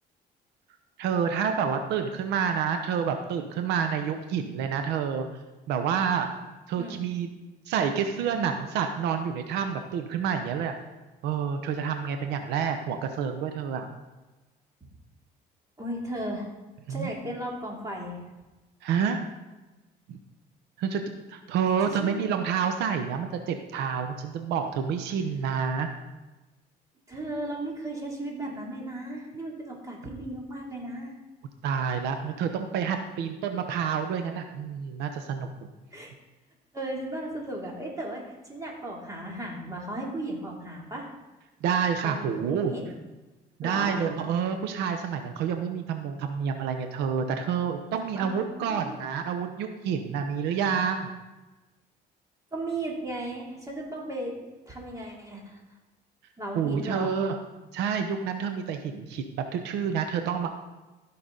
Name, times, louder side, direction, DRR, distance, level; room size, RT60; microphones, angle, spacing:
voice 1, 1.0-5.3 5.7-6.3 6.7-7.3 7.7-10.7 11.2-13.9 16.9-17.1 18.8-19.2 20.1-20.2 20.8-21.0 21.3-25.9 31.6-35.5 41.6-42.7 43.6-51.1 56.5-57.4 57.7-60.5, right 7 dB, 85° right, 6 dB, 0.8 m, -28 dB
voice 2, 15.8-16.5 16.9-18.2 22.0-22.2 27.1-31.1 35.0-35.2 35.9-36.1 36.7-41.1 42.0-42.9 43.6-44.0 48.2-48.9 52.5-54.3 54.7-55.6 56.4-57.1, right 1 dB, 20° right, -2 dB, 2.8 m, -35 dB
15.0 x 5.9 x 3.9 m, 1.1 s
cardioid pair, 110°, 17 cm